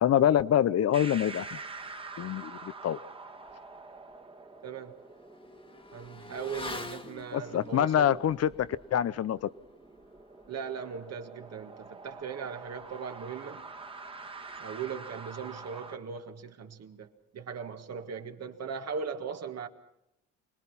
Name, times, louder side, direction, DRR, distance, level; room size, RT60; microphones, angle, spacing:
voice 1, 0.0-1.6 2.2-3.0 7.3-9.5, left 10 dB, 55° left, 0.7 m, -26 dB
sound 1, 0.9-15.9, right 3 dB, 15° right, 1.6 m, -47 dB
Motorcycle / Accelerating revving vroom, 3.5-3.6 4.0-14.0 14.2-14.4, left 3 dB, 20° left, 1.6 m, -48 dB
voice 2, 4.6-5.0 5.9-8.2 10.5-13.7 14.6-17.1 17.3-19.7, right 6 dB, 55° right, 1.8 m, -39 dB
25.5 x 19.5 x 5.8 m
cardioid pair, 90°, 30 cm